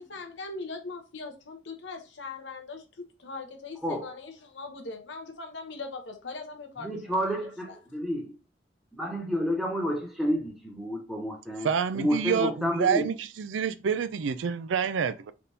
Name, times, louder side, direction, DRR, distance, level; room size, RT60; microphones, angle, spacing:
voice 1, 0.0-7.3 7.7-7.8, left 3 dB, 80° left, 1.0 m, -40 dB
voice 2, 6.8-8.3 8.9-11.7 11.9-13.1, equal, ahead, 1.0 m, -30 dB
voice 3, 11.6-15.3, right 6 dB, 90° right, 0.4 m, -28 dB
4.1 x 3.4 x 2.7 m
head